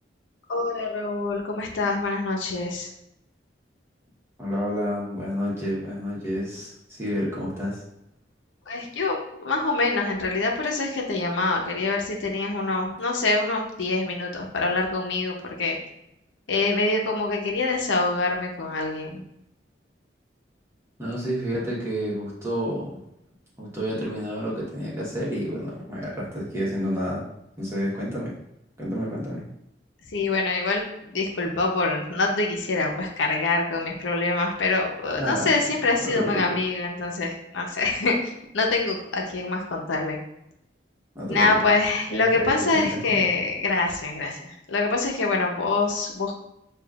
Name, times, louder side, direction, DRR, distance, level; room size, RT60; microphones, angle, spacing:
voice 1, 0.5-2.9 8.7-15.8 16.5-19.2 30.1-40.2 41.3-46.3, left 3 dB, 90° left, 0 dB, 0.8 m, -25 dB
voice 2, 4.4-7.8 21.0-23.0 23.6-27.2 27.6-28.3 28.8-29.5 35.1-35.5 36.1-36.6 41.1-41.5 42.1-43.2, equal, 15° right, -6 dB, 1.1 m, -29 dB
6.8 x 2.5 x 2.4 m, 0.81 s
head